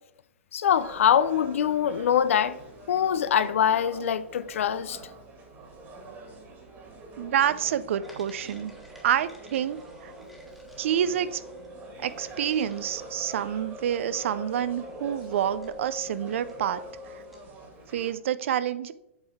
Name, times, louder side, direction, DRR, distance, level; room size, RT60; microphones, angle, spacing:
voice 1, 0.5-2.6 2.9-5.0, left 9 dB, 70° left, 0.4 m, -23 dB
sound 1, 0.7-18.1, right 2 dB, 25° right, 1.8 m, -46 dB
voice 2, 7.2-8.7 9.0-10.1 10.8-11.4 12.0-16.8 17.9-18.9, right 10 dB, 65° right, 0.4 m, -28 dB
sound 2, 8.0-17.6, left 2 dB, ahead, 1.4 m, -45 dB
7.7 x 4.4 x 3.5 m
hypercardioid pair, 130°, 7 cm